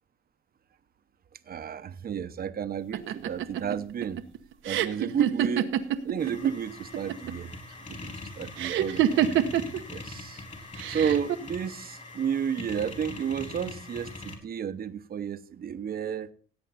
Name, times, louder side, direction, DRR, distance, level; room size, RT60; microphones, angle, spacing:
voice 1, 1.5-4.2 4.6-5.8 6.0-7.5 7.8-8.1 8.4-9.3 9.9-10.4 10.9-16.3, right 8 dB, 50° right, 0.9 m, -32 dB
sound 1, 2.9-6.5 6.8-7.5 8.6-9.8 10.8-11.3, right 10 dB, 80° right, 1.0 m, -26 dB
sound 2, 6.2-14.4, left 3 dB, 40° left, 4.0 m, -42 dB
16.5 x 8.3 x 4.2 m
cardioid pair, 90°, 20 cm